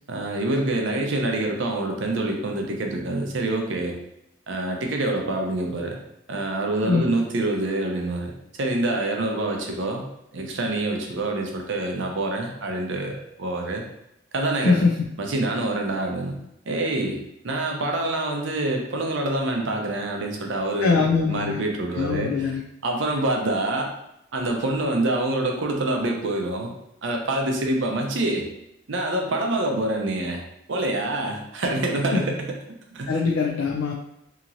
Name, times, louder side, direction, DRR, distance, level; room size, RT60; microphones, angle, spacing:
voice 1, 0.1-4.0 4.5-6.0 6.3-8.3 8.6-10.1 10.3-13.8 14.3-14.8 15.2-16.4 16.7-17.2 17.4-22.5 22.8-23.9 24.3-26.7 27.0-28.5 28.9-30.4 30.7-33.1, right 2 dB, 70° right, 2 dB, 0.6 m, -26 dB
voice 2, 14.6-15.0 20.8-21.6 21.9-22.6 32.1-32.2 33.1-33.9, left 4 dB, 90° left, 0 dB, 0.4 m, -22 dB
2.8 x 2.8 x 2.5 m, 0.82 s
head